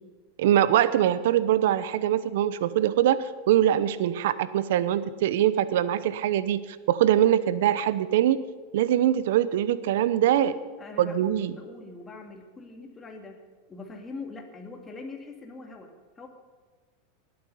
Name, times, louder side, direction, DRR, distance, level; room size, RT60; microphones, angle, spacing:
voice 1, 0.4-6.6 6.9-8.4 8.7-10.5 11.0-11.5, right 11 dB, 75° right, 15 dB, 0.7 m, -23 dB
voice 2, 10.1-13.4 13.7-16.3, left 3 dB, 20° left, 2 dB, 2.3 m, -42 dB
20.0 x 8.9 x 5.5 m, 1.4 s
hypercardioid pair, 115°, 0 cm